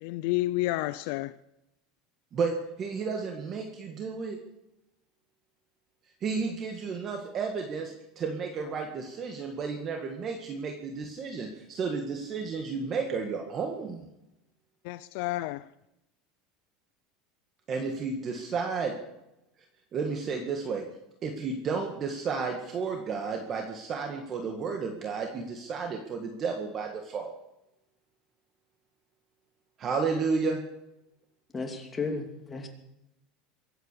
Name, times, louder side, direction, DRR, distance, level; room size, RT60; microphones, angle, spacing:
voice 1, 0.0-1.3 14.9-15.6, left 18 dB, 65° left, 0.5 m, -30 dB
voice 2, 2.8-4.4 6.2-14.1 17.7-18.9 19.9-20.8 21.2-27.3 29.8-30.6, right 5 dB, 30° right, 1.8 m, -32 dB
voice 3, 31.5-32.7, left 4 dB, 15° left, 2.7 m, -34 dB
23.5 x 9.0 x 6.9 m
supercardioid pair, 150°, 0 cm